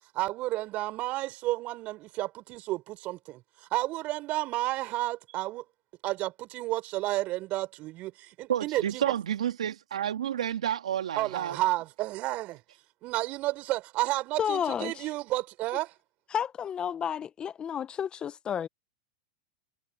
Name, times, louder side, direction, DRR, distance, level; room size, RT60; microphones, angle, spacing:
voice 1, 0.1-3.4 3.7-5.6 6.0-9.0 11.2-12.6 13.0-15.9, right 18 dB, 45° right, 5.2 m, -31 dB
voice 2, 8.5-11.6, right 10 dB, 80° right, 2.4 m, -30 dB
voice 3, 14.4-15.0 16.3-18.7, left 8 dB, 25° left, 1.2 m, -31 dB
hypercardioid pair, 105°, 3 cm